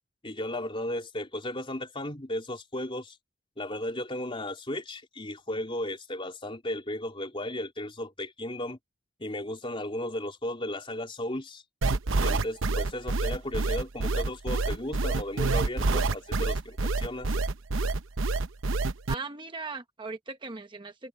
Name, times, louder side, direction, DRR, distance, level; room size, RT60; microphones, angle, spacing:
voice 1, 0.2-3.2 3.6-8.8 9.2-11.6 12.2-17.4, left 1 dB, 25° left, 3.4 m, -35 dB
sound 1, 11.8-19.1, right 3 dB, 90° right, 0.9 m, -27 dB
voice 2, 19.1-21.1, right 3 dB, 25° right, 1.0 m, -38 dB
head